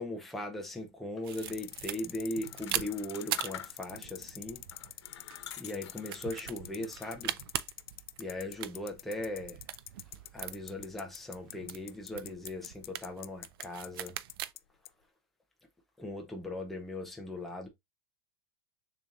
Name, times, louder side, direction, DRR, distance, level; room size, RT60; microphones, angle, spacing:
voice 1, 0.0-4.6 5.6-7.4 8.2-9.6 10.3-14.2 16.0-17.7, left 1 dB, ahead, 0.7 m, -39 dB
sound 1, 1.2-14.5, right 13 dB, 60° right, 0.4 m, -42 dB
sound 2, 1.3-14.6 14.9-15.0, left 15 dB, 60° left, 0.4 m, -45 dB
sound 3, 2.4-4.1 4.7-6.5 6.9-7.5, left 9 dB, 90° left, 1.0 m, -47 dB
6.7 x 2.9 x 2.5 m
supercardioid pair, 170°, 14 cm